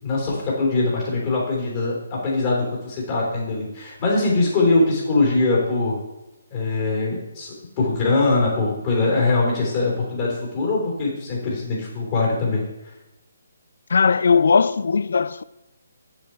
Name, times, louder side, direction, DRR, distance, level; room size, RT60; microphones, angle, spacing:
voice 1, 0.0-6.0 6.5-12.6, left 3 dB, 30° left, 3.3 m, -22 dB
voice 2, 13.9-15.4, left 5 dB, 55° left, 0.3 m, -18 dB
7.3 x 7.2 x 4.5 m
figure-of-eight pair, 140°, 0 cm